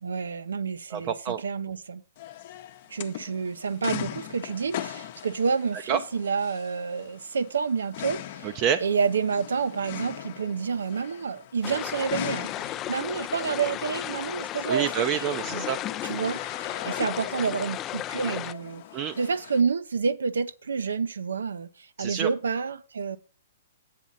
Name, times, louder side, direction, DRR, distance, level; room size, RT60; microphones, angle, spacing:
voice 1, 0.0-2.0 2.9-15.1 15.5-15.7 16.0-18.8 19.2-23.2, right 5 dB, 90° right, 0.7 m, -29 dB
voice 2, 0.9-1.4 5.9-6.0 8.4-8.8 14.7-15.8 18.9-19.1 22.0-22.3, right 8 dB, 35° right, 0.5 m, -27 dB
sound 1, 2.2-19.6, left 12 dB, 50° left, 0.7 m, -40 dB
sound 2, 11.6-18.5, left 13 dB, 25° left, 0.3 m, -34 dB
7.6 x 7.3 x 4.1 m
hypercardioid pair, 140°, 0 cm